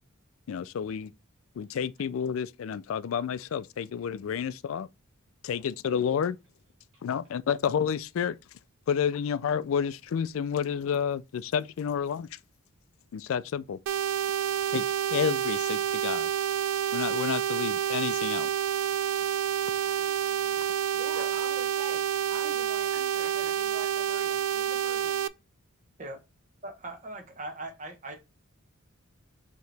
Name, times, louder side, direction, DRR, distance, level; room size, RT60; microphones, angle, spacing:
voice 1, 0.5-1.1 1.6-4.9 5.4-6.4 7.0-8.4 8.9-12.4 13.1-13.8 14.7-16.3 16.9-18.5, left 7 dB, 70° left, 0.3 m, -30 dB
sound 1, 13.9-25.3, right 10 dB, 85° right, 0.3 m, -28 dB
voice 2, 19.8-25.2, right 3 dB, 60° right, 0.8 m, -46 dB
voice 3, 26.6-28.1, right 2 dB, 35° right, 1.0 m, -40 dB
4.5 x 3.0 x 3.3 m
head